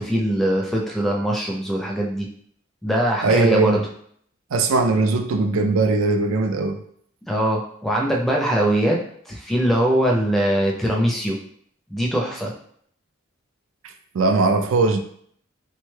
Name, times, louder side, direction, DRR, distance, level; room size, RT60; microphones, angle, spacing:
voice 1, 0.0-2.3 2.8-3.8 7.3-9.0 9.3-11.4 11.9-12.5, right 1 dB, ahead, 0.4 m, -21 dB
voice 2, 3.2-3.9 4.5-6.8 13.8-15.0, right 3 dB, 85° right, 0.4 m, -20 dB
3.3 x 2.2 x 3.2 m
head